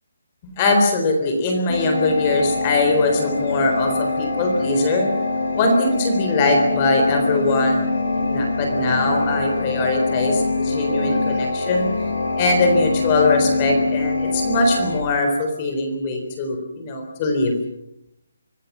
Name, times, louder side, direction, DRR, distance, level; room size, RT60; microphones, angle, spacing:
voice 1, 0.6-5.1 5.5-7.9 8.2-11.9 12.4-17.6, left 2 dB, 20° left, 3 dB, 4.0 m, -21 dB
sound 1, 1.7-15.0, left 3 dB, 65° left, 6.0 m, -24 dB
25.5 x 20.0 x 7.4 m, 0.81 s
hypercardioid pair, 175°, 0 cm